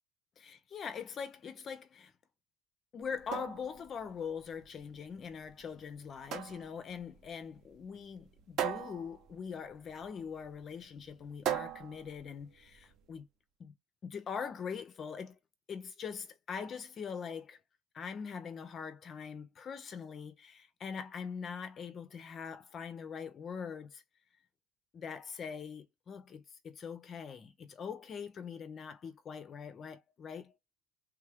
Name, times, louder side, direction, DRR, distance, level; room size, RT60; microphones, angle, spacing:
voice 1, 0.4-2.1 2.9-13.3 13.6-13.7 14.0-15.4 15.7-17.6 17.9-24.0 24.9-30.5, left 6 dB, 25° left, 0.4 m, -42 dB
sound 1, 3.0-13.0, right 10 dB, 40° right, 0.6 m, -41 dB
3.3 x 2.3 x 3.3 m
cardioid pair, 165°, 0 cm